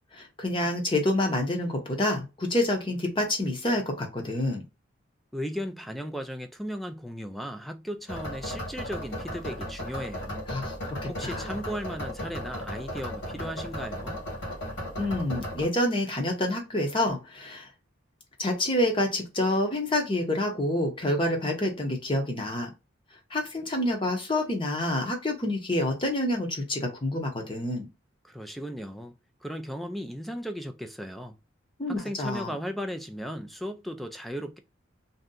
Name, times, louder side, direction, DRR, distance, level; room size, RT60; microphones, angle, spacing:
voice 1, 0.1-4.6 10.5-11.5 15.0-17.7 18.4-22.7 23.3-27.9 31.8-32.5, left 1 dB, 25° left, 0.8 m, -28 dB
voice 2, 5.3-10.4 11.1-14.2 28.2-29.1 29.4-31.4 31.9-34.6, equal, ahead, 0.3 m, -36 dB
sound 1, 8.1-15.6, equal, 60° left, 1.5 m, -36 dB
2.7 x 2.2 x 3.7 m
head